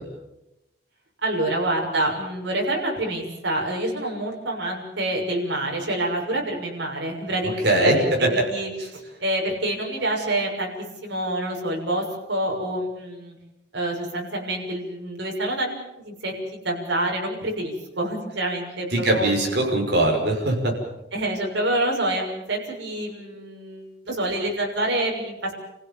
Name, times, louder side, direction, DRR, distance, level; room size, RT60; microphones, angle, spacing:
voice 1, 1.2-10.7 11.0-13.4 13.7-19.3 21.1-25.5, right 1 dB, 85° right, 0 dB, 6.7 m, -27 dB
voice 2, 7.6-7.9 8.4-8.5 18.9-20.7, right 1 dB, 65° right, 1 dB, 6.2 m, -21 dB
29.5 x 16.0 x 7.4 m, 0.93 s
head